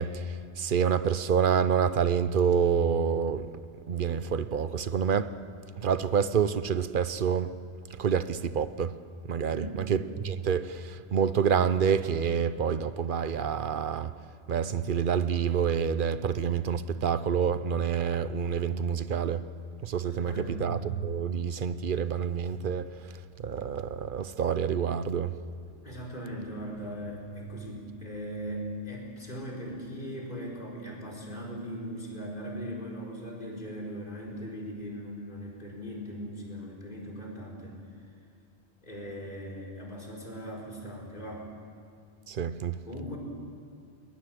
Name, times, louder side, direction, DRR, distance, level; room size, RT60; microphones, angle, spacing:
voice 1, 0.0-3.5 3.9-5.3 5.8-7.6 8.0-9.0 9.3-14.1 14.5-19.5 19.8-22.9 23.4-25.4 42.3-42.8, right 7 dB, 55° right, 0.8 m, -27 dB
voice 2, 9.5-9.8 20.0-20.6 25.8-37.8 38.8-41.5 42.9-43.2, equal, 45° left, 4.7 m, -39 dB
21.0 x 20.0 x 7.7 m
omnidirectional pair, 1.1 m